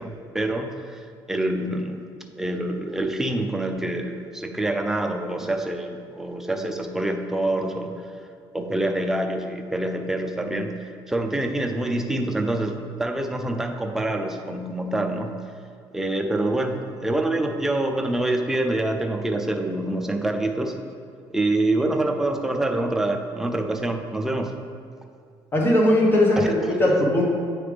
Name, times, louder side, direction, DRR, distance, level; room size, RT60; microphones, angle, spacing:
voice 1, 0.0-2.0 2.4-7.9 8.5-10.8 11.1-15.3 15.9-20.8 21.3-24.6 26.4-26.7, right 1 dB, 5° right, 4 dB, 0.5 m, -26 dB
voice 2, 25.5-27.2, left 1 dB, 25° left, -2 dB, 1.1 m, -19 dB
8.7 x 3.3 x 3.4 m, 2.2 s
cardioid pair, 110°, 9 cm